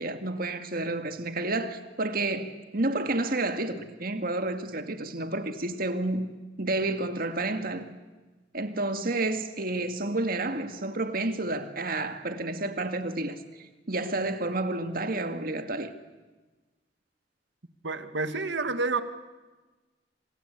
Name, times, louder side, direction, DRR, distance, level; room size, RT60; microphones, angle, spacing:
voice 1, 0.0-6.2 6.6-7.9 8.5-13.4 13.9-15.9, right 2 dB, 55° right, 2.0 m, -30 dB
voice 2, 17.8-19.0, right 3 dB, 80° right, 1.9 m, -29 dB
27.0 x 26.5 x 8.3 m
head